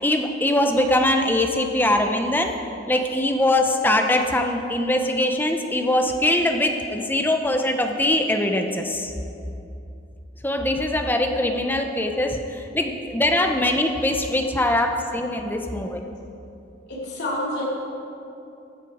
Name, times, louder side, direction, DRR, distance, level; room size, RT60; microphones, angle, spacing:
voice 1, 0.0-2.5 2.9-9.1 10.4-16.0, left 1 dB, 10° left, 4 dB, 0.7 m, -22 dB
voice 2, 16.9-17.7, left 1 dB, 55° left, -5 dB, 3.2 m, -28 dB
15.0 x 9.1 x 4.9 m, 2.8 s
head